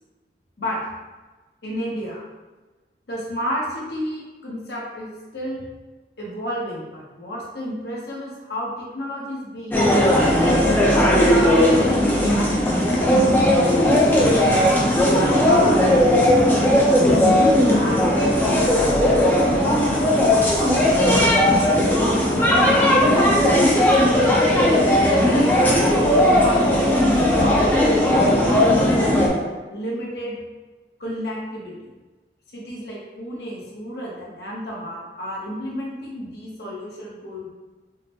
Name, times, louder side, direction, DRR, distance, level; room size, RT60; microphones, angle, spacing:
voice 1, 1.6-2.2 3.1-5.6 6.2-10.4 10.9-11.8 12.1-12.8 14.1-14.6 14.9-16.3 16.8-18.6 19.5-21.7 22.0-23.6 24.5-28.7 29.7-30.4 31.0-31.9 32.5-37.5, equal, 65° left, -4 dB, 0.9 m, -32 dB
sound 1, 9.7-29.3, left 1 dB, 10° left, 0.5 m, -17 dB
4.9 x 2.1 x 2.9 m, 1.2 s
head